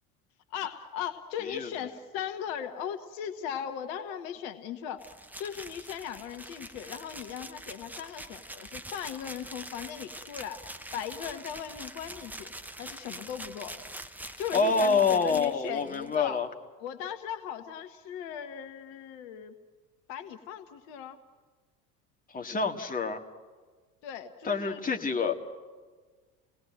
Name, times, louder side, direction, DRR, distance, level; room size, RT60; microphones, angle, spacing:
voice 1, 0.5-5.0 5.4-10.6 10.9-12.5 12.8-13.8 14.4-16.4 16.8-19.5 20.1-21.2 24.0-25.0, left 9 dB, 55° left, 9 dB, 1.4 m, -38 dB
sound 1, 5.0-16.2, right 1 dB, 5° right, 0.9 m, -44 dB
voice 2, 14.5-16.5 22.3-23.2 24.4-25.3, left 4 dB, 20° left, 3 dB, 1.9 m, -27 dB
30.0 x 19.0 x 8.9 m, 1.5 s
figure-of-eight pair, 70°, 46 cm